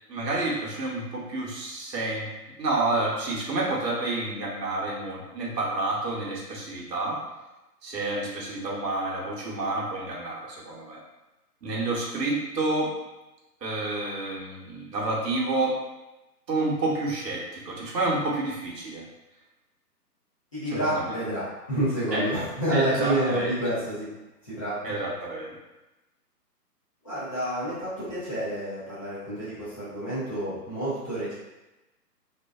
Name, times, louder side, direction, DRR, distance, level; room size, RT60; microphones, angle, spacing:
voice 1, 0.1-2.3 2.6-7.2 7.8-11.0 11.6-12.9 13.6-15.7 16.5-19.0 20.7-21.1 22.1-22.2 22.7-23.5 24.8-25.5, right 2 dB, 75° right, -3 dB, 0.9 m, -29 dB
voice 2, 20.5-24.1 24.4-24.7 27.0-31.3, right 1 dB, 20° left, -14 dB, 0.5 m, -29 dB
2.5 x 2.2 x 2.3 m, 1.0 s
hypercardioid pair, 150°, 49 cm